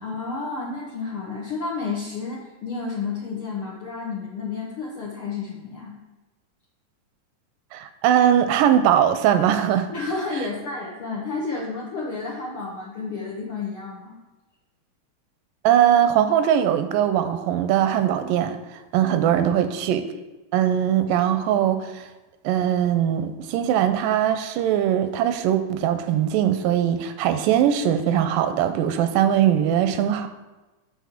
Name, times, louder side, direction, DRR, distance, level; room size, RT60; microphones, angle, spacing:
voice 1, 0.0-5.9 9.9-14.2 19.0-19.1, left 4 dB, 70° left, -4 dB, 1.3 m, -31 dB
voice 2, 7.7-9.9 15.6-18.6 18.9-20.0 20.5-22.1 22.4-30.3, right 10 dB, 90° right, 10 dB, 2.2 m, -21 dB
7.1 x 4.1 x 5.9 m, 1.1 s
omnidirectional pair, 3.8 m